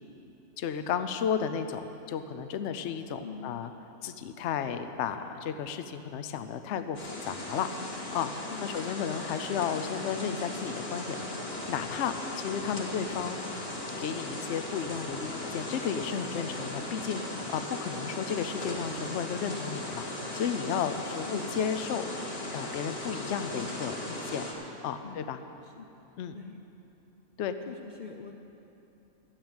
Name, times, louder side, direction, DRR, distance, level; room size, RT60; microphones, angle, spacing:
voice 1, 0.6-3.7 4.0-8.3 8.6-11.3 11.7-13.4 14.0-20.1 20.3-22.1 22.5-24.4 24.8-25.4 26.2-26.3 27.4-27.5, left 7 dB, 65° left, 9 dB, 0.9 m, -33 dB
voice 2, 3.2-3.6 8.5-8.8 13.4-13.6 21.3-21.5 25.0-25.3 25.6-25.9 26.3-26.6 27.7-28.4, left 6 dB, 80° left, 4 dB, 0.4 m, -44 dB
sound 1, 6.9-24.5, left 1 dB, 45° left, 1.9 m, -38 dB
13.0 x 7.5 x 8.8 m, 3.0 s
omnidirectional pair, 1.5 m